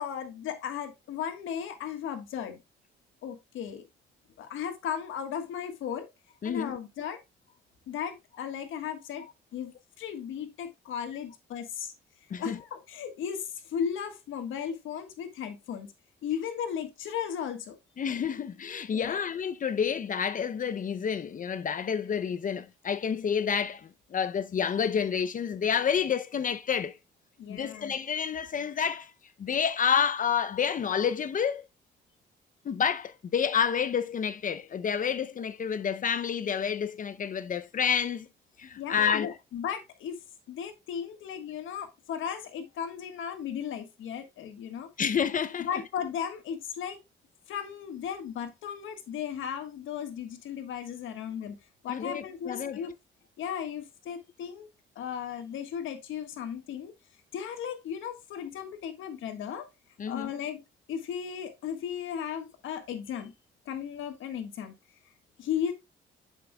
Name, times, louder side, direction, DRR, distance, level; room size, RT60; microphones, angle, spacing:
voice 1, 0.0-2.6 3.2-3.9 4.4-6.1 6.4-7.2 7.9-9.3 9.5-11.9 12.4-15.9 16.2-17.8 18.9-19.2 27.4-27.9 38.8-40.2 40.5-44.9 45.6-47.0 47.5-51.6 51.8-52.9 53.4-54.7 54.9-56.9 57.3-59.7 60.1-60.6 60.9-63.3 63.6-64.7 65.4-65.7, left 8 dB, 80° left, 1.4 m, -35 dB
voice 2, 6.4-6.8 12.3-12.6 18.0-27.0 27.5-29.1 29.4-31.7 32.6-38.3 38.6-39.3 45.0-45.7 51.9-52.8 60.0-60.3, left 7 dB, 40° left, 0.6 m, -29 dB
7.4 x 7.3 x 2.2 m
cardioid pair, 90°, 20 cm